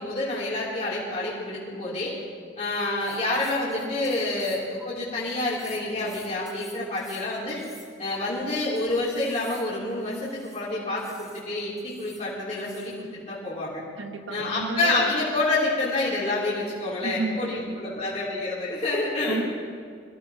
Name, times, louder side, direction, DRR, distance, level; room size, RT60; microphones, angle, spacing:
voice 1, 0.0-2.1 2.6-7.6 8.0-13.8 14.3-19.4, left 2 dB, 35° left, -8 dB, 3.4 m, -28 dB
sound 1, 2.8-4.8 5.5-8.2 8.7-10.6 11.0-11.4 11.8-12.3 12.6-13.0, left 1 dB, 5° right, 3.3 m, -50 dB
voice 2, 14.0-15.1 17.0-18.0 19.3-19.5, right 2 dB, 85° right, 4 dB, 1.4 m, -32 dB
23.5 x 16.0 x 3.0 m, 2.1 s
head